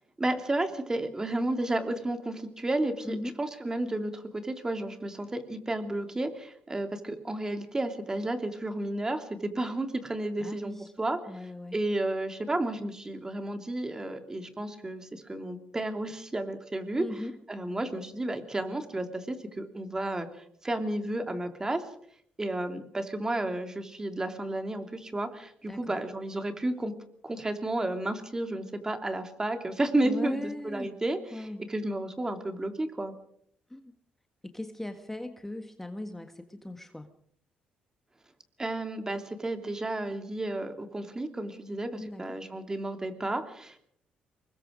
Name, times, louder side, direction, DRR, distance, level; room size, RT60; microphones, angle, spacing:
voice 1, 0.2-11.2 11.7-17.0 17.5-21.8 22.4-26.9 27.2-33.1 38.6-43.9, right 1 dB, 20° right, 7 dB, 3.0 m, -32 dB
voice 2, 3.0-3.3 10.4-10.9 11.3-11.8 17.0-17.4 25.7-26.0 30.0-31.0 31.3-31.6 33.7-33.9 34.4-37.1 42.0-42.3, left 1 dB, 10° left, 7 dB, 1.6 m, -38 dB
24.5 x 20.5 x 5.2 m, 0.67 s
cardioid pair, 85°, 3 cm